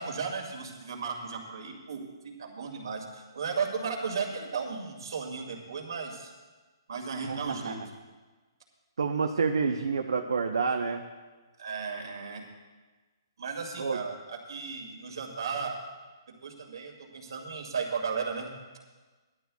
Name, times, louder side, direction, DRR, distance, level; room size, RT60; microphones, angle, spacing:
voice 1, 0.0-6.3 6.9-7.8 11.6-12.4 13.4-15.8 16.4-18.5, right 5 dB, 75° right, 2 dB, 2.3 m, -35 dB
voice 2, 7.2-7.8 9.0-11.0 13.8-14.0, right 5 dB, 90° right, 4 dB, 0.9 m, -29 dB
16.5 x 12.0 x 2.3 m, 1.3 s
hypercardioid pair, 170°, 2 cm